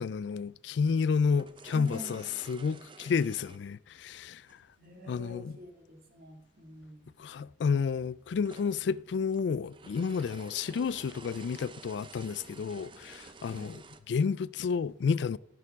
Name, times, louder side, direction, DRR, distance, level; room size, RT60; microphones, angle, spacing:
voice 1, 0.0-4.7 5.1-5.6 7.2-15.4, left 5 dB, 75° left, 0.3 m, -31 dB
sound 1, 1.4-4.7 6.5-6.6 6.8-6.9 7.7-14.0, right 3 dB, 25° right, 0.6 m, -51 dB
voice 2, 1.7-2.3 4.8-7.1 13.5-13.8, left 1 dB, 55° right, 2.2 m, -46 dB
14.5 x 6.8 x 3.6 m
head